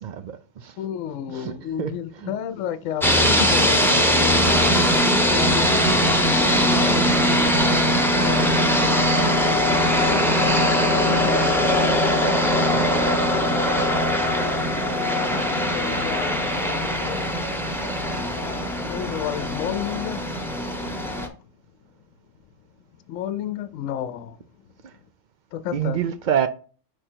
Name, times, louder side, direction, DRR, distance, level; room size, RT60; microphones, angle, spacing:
voice 1, 0.0-0.7 1.3-1.5 1.8-2.3 25.7-26.5, right 9 dB, 90° right, 0.4 m, -26 dB
voice 2, 0.8-5.1 6.4-8.6 9.5-10.4 10.9-12.6 15.6-17.2 18.9-20.2 23.1-24.4 25.5-26.0, left 10 dB, 75° left, 0.9 m, -32 dB
sound 1, 3.0-21.3, equal, ahead, 0.7 m, -21 dB
5.0 x 4.9 x 4.4 m
omnidirectional pair, 1.4 m